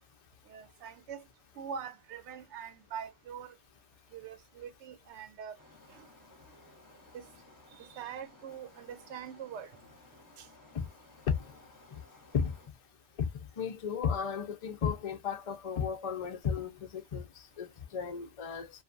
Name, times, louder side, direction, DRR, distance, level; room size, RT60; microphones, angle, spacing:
voice 1, 0.5-1.3 1.6-3.6 4.1-5.6 5.9-6.1 7.1-7.3 7.7-9.7 10.4-10.5, right 7 dB, 70° right, 0.8 m, -43 dB
sound 1, 5.6-12.7, left 1 dB, 20° left, 0.6 m, -58 dB
voice 2, 13.6-17.3 17.6-18.7, left 7 dB, 65° left, 0.3 m, -33 dB
2.7 x 2.2 x 2.5 m
omnidirectional pair, 1.3 m